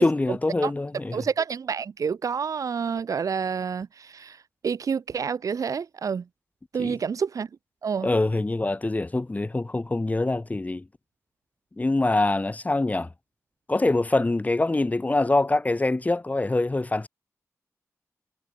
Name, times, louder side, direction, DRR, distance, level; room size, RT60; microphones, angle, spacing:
voice 1, 0.0-1.2 6.8-7.0 8.0-10.9 11.8-13.1 13.7-17.1, left 2 dB, 25° left, 2.3 m, -24 dB
voice 2, 1.1-6.2 6.7-7.5 7.8-8.1, right 6 dB, 90° right, 1.5 m, -28 dB
wide cardioid pair, 100°, 6 cm